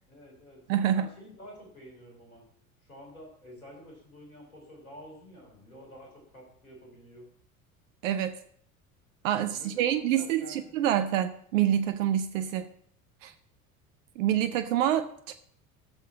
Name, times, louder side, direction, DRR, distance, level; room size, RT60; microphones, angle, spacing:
voice 1, 0.1-0.6 0.9-2.4 2.9-7.3 9.5-10.9, equal, 85° left, 0 dB, 3.4 m, -49 dB
voice 2, 0.7-1.1 8.0-8.4 9.2-12.7 13.2-13.3 14.2-15.3, right 11 dB, 65° right, 10 dB, 0.8 m, -27 dB
16.0 x 6.6 x 4.1 m, 0.63 s
figure-of-eight pair, 70°, 42 cm